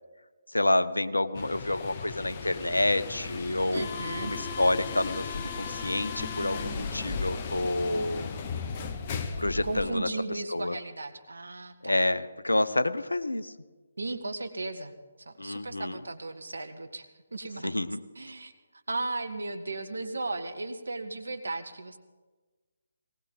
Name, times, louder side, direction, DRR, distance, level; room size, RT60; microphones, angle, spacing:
voice 1, 0.5-8.4 9.4-10.1 10.5-10.8 11.8-13.5 15.4-16.0 17.6-18.0, left 1 dB, 80° left, 12 dB, 0.8 m, -28 dB
sound 1, 1.3-9.9, left 5 dB, 30° left, 1.1 m, -36 dB
voice 2, 3.7-4.3 9.6-12.0 14.0-14.9 15.2-17.7 18.1-22.0, right 2 dB, 70° right, 9 dB, 1.5 m, -36 dB
19.0 x 18.5 x 3.9 m, 1.3 s
figure-of-eight pair, 145°, 0 cm